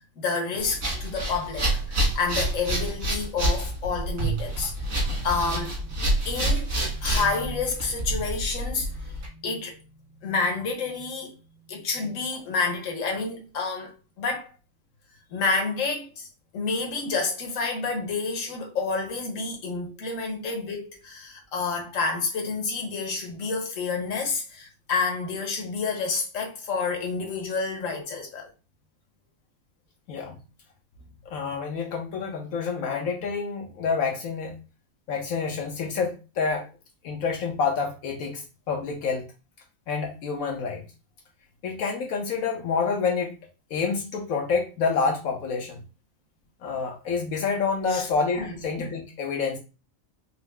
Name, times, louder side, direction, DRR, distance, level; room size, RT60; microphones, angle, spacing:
voice 1, 0.2-5.9 6.2-6.7 7.0-9.1 9.4-9.8 10.2-11.4 11.7-14.5 15.3-16.3 16.5-28.5 47.9-48.1 48.4-48.6, left 4 dB, 70° left, 1.4 m, -29 dB
sound 1, 0.6-9.3, right 1 dB, 75° right, 2.4 m, -28 dB
voice 2, 31.3-34.6 35.1-36.6 37.0-39.3 39.9-40.8 41.6-43.3 43.7-45.8 46.6-49.6, left 5 dB, 90° left, 1.3 m, -28 dB
5.3 x 2.0 x 3.5 m
omnidirectional pair, 1.4 m